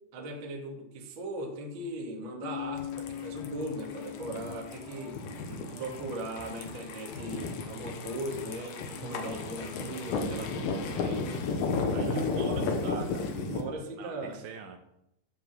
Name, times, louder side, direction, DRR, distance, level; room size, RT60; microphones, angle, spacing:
voice 1, 0.1-5.2 5.8-11.6 11.9-14.4, right 1 dB, 60° right, 0 dB, 1.2 m, -38 dB
Bass guitar, 2.4-6.3, left 11 dB, 65° left, 5.1 m, -42 dB
sound 1, 2.8-13.6, left 4 dB, 85° left, 2.0 m, -34 dB
sound 2, 3.1-11.5, left 1 dB, 40° left, 1.3 m, -49 dB
voice 2, 5.4-6.2 12.1-12.3 14.0-14.8, right 6 dB, 80° right, 6 dB, 2.8 m, -47 dB
12.0 x 5.1 x 7.4 m, 0.81 s
omnidirectional pair, 5.8 m